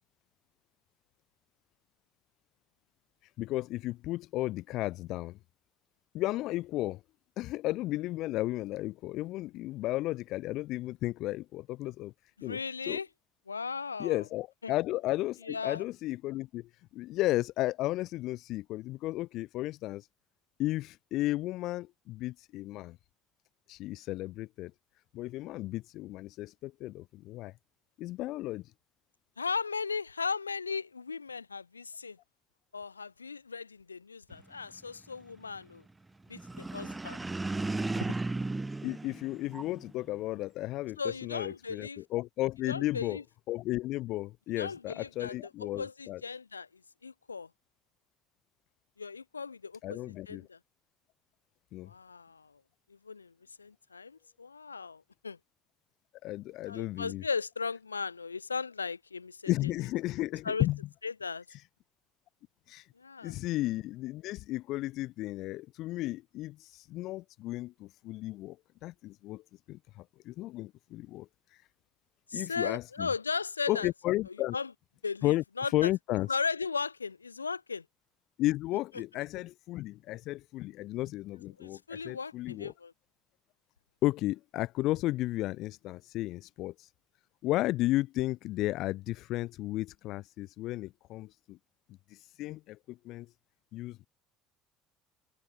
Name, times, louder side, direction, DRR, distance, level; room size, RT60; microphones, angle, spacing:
voice 1, 3.4-5.4 6.1-7.0 7.4-12.1 12.4-13.0 14.0-20.1 20.6-23.0 23.7-24.7 25.1-27.5 28.0-28.7 38.8-43.2 43.5-46.2 49.8-50.4 51.7-51.9 56.2-57.2 59.5-60.8 61.5-61.6 62.7-62.9 63.2-68.6 68.8-69.4 69.7-71.6 72.3-73.1 73.7-74.5 75.2-75.4 75.7-76.3 78.4-82.7 84.0-86.9 87.4-91.6 92.1-93.3 93.7-94.1, left 17 dB, 60° left, 2.7 m, -34 dB
voice 2, 12.4-13.1 13.5-14.2 14.6-14.7 15.5-15.8 29.4-32.2 32.7-35.8 36.3-37.2 41.0-42.0 42.7-43.2 44.6-46.7 47.0-47.5 49.0-50.6 51.8-52.5 52.9-53.3 53.6-55.4 56.7-59.5 60.4-60.7 61.0-61.4 63.0-63.4 72.3-73.9 74.5-74.7 75.0-75.9 76.3-77.8 81.6-82.9, left 5 dB, 90° left, 5.2 m, -37 dB
sound 1, 36.3-39.9, right 2 dB, 15° right, 4.0 m, -35 dB
open air
figure-of-eight pair, 60°, 0 cm